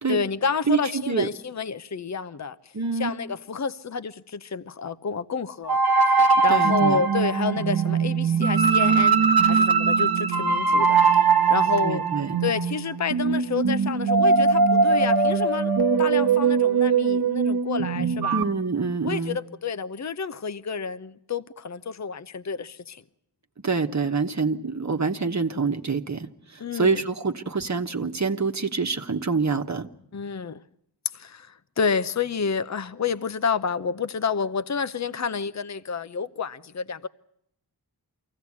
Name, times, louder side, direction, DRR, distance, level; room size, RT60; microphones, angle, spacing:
voice 1, 0.1-2.6 3.0-5.8 6.1-11.0 11.5-12.0 12.4-15.7 16.0-18.4 19.0-23.0 26.6-27.0 30.1-30.6 31.1-37.1, left 5 dB, 40° left, 0.8 m, -29 dB
voice 2, 0.7-1.3 2.7-3.1 6.5-7.1 11.8-12.4 18.3-19.4 23.6-29.9, right 4 dB, 40° right, 1.2 m, -26 dB
sound 1, 5.7-18.4, right 5 dB, 60° right, 1.2 m, -21 dB
23.5 x 16.5 x 8.6 m
cardioid pair, 45°, 41 cm